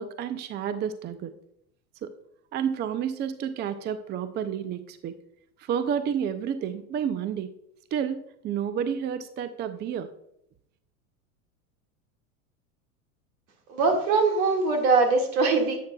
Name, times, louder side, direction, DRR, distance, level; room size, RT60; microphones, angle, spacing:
voice 1, 0.0-1.3 2.0-2.1 2.5-5.1 5.6-7.5 7.9-10.1, right 8 dB, 25° right, 12 dB, 0.5 m, -30 dB
voice 2, 13.7-15.8, right 4 dB, 75° right, 3 dB, 2.0 m, -22 dB
11.0 x 8.3 x 2.3 m, 0.77 s
hypercardioid pair, 95°, 43 cm